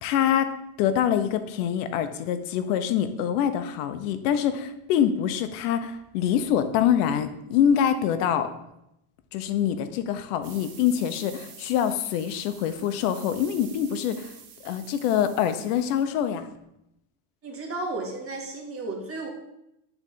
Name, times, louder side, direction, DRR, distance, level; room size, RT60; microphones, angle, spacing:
voice 1, 0.0-8.5 9.3-14.3 14.6-16.5, left 9 dB, 90° left, 10 dB, 0.8 m, -25 dB
sound 1, 10.4-16.0, right 8 dB, 50° right, 1.2 m, -48 dB
voice 2, 17.4-19.3, right 2 dB, 30° right, 0 dB, 1.8 m, -33 dB
10.5 x 3.9 x 3.6 m, 0.83 s
cardioid pair, 135°, 44 cm